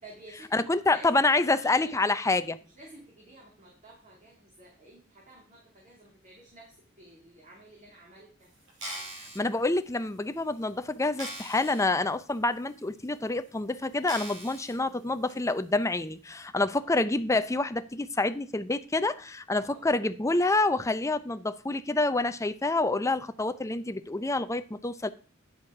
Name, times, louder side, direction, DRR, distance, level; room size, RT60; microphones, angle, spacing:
voice 1, 0.0-2.0 2.7-8.5 16.5-16.9 19.6-19.9, right 1 dB, 40° right, 2.5 m, -52 dB
voice 2, 0.5-2.6 9.3-25.1, left 2 dB, 15° left, 0.5 m, -27 dB
sound 1, 8.7-9.4 10.1-10.2 10.6-10.7 11.2-11.9 12.3-12.4 13.1-13.2 14.1-14.7 15.3-15.4, right 1 dB, 65° right, 5.9 m, -40 dB
9.6 x 7.3 x 4.8 m
head